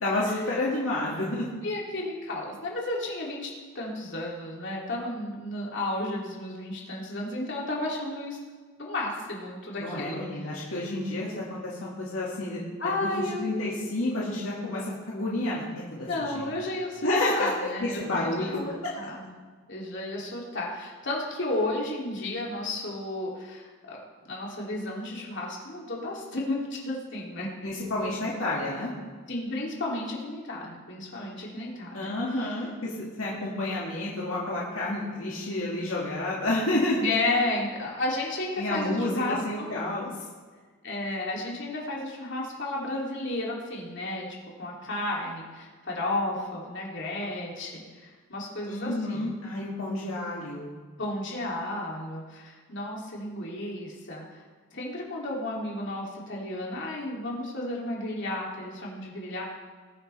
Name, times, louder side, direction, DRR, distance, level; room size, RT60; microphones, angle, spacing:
voice 1, 0.0-1.5 9.8-12.6 13.0-16.1 16.3-16.5 17.0-17.5 17.8-18.6 27.6-28.9 31.9-37.0 38.6-40.1 48.7-50.6, left 2 dB, 75° left, -5 dB, 2.2 m, -30 dB
voice 2, 1.6-8.4 8.8-10.5 12.8-13.5 16.1-19.3 19.7-24.0 24.2-27.5 29.3-32.1 32.4-32.5 37.0-39.7 40.8-44.3 44.6-49.3 51.0-54.4 54.7-59.4, left 2 dB, 60° left, -3 dB, 2.9 m, -33 dB
21.0 x 9.1 x 3.4 m, 1.5 s
head